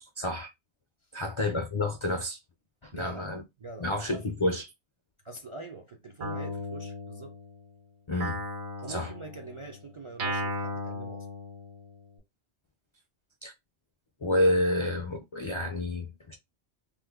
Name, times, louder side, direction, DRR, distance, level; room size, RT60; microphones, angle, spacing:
voice 1, 0.0-0.5 1.1-2.4 2.8-3.4 3.8-4.6 8.1-8.4 8.9-9.1 13.4-13.5 14.2-16.3, left 1 dB, 55° left, 0.3 m, -29 dB
voice 2, 2.9-3.3 3.6-4.3 5.2-7.4 8.8-11.3, right 3 dB, 50° right, 0.3 m, -44 dB
Guitar, 6.2-7.7 8.2-12.1, left 1 dB, 70° right, 1.1 m, -36 dB
3.1 x 2.1 x 3.4 m
omnidirectional pair, 1.2 m